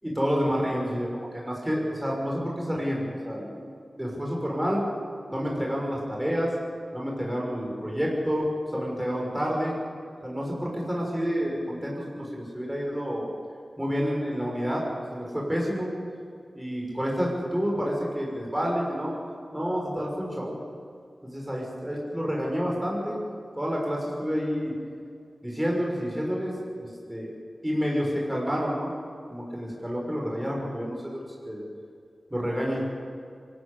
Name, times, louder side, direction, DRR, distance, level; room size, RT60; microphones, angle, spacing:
voice 1, 0.0-3.6 4.0-4.8 5.3-6.5 6.9-9.7 10.2-13.3 13.8-14.9 15.1-15.9 16.5-19.1 19.5-20.5 21.2-23.2 23.6-24.7 25.4-27.3 27.6-28.9 29.3-31.6 32.3-32.9, equal, 10° right, -2 dB, 6.3 m, -29 dB
24.5 x 13.5 x 8.6 m, 2.3 s
cardioid pair, 45°, 0 cm